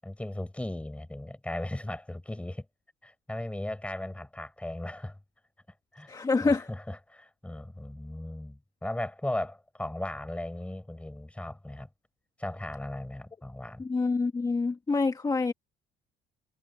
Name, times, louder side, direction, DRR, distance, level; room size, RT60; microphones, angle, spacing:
voice 1, 0.0-2.7 3.0-5.2 5.9-6.1 6.4-11.9 12.4-13.8, left 1 dB, 5° left, 7.8 m, -37 dB
voice 2, 6.1-6.7 13.8-15.5, left 4 dB, 20° left, 2.0 m, -26 dB
cardioid pair, 110°, 17 cm